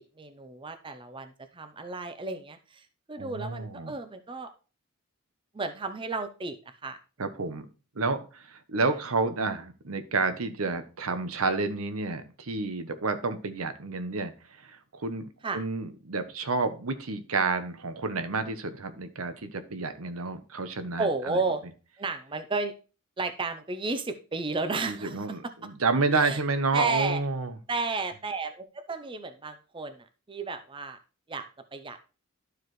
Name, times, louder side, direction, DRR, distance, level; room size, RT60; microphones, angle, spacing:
voice 1, 0.2-4.5 5.5-7.5 8.8-9.0 15.4-15.6 21.0-21.6 22.0-22.7 23.2-25.3 26.1-26.4 26.7-27.2 27.7-31.0 31.3-31.5 31.7-32.0, right 3 dB, 25° right, 8 dB, 0.5 m, -33 dB
voice 2, 3.2-3.9 7.2-7.7 8.0-14.3 14.6-15.3 15.5-21.4 24.9-27.5, right 3 dB, 85° right, 10 dB, 0.9 m, -30 dB
12.0 x 4.8 x 3.1 m, 0.35 s
head